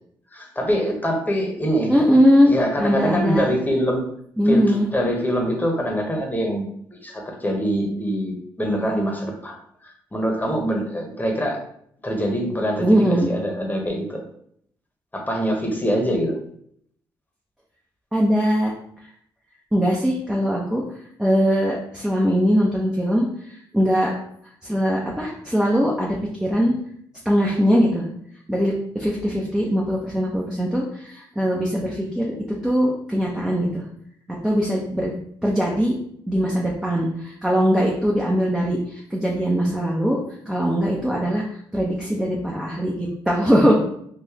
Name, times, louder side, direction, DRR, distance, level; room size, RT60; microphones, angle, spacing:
voice 1, 0.3-2.0 2.5-4.1 4.5-6.7 7.0-9.6 9.8-11.6 12.0-14.2 15.1-16.4, equal, 15° left, 1 dB, 1.1 m, -24 dB
voice 2, 1.9-3.5 4.4-4.9 12.8-13.3 18.1-18.7 19.7-20.8 21.2-24.1 24.6-26.7 27.2-28.1 28.5-33.8 34.4-35.1 35.4-35.9 36.3-40.2 40.5-43.7, equal, 5° right, -3 dB, 0.7 m, -21 dB
3.8 x 2.5 x 2.9 m, 0.67 s
hypercardioid pair, 50°, 11 cm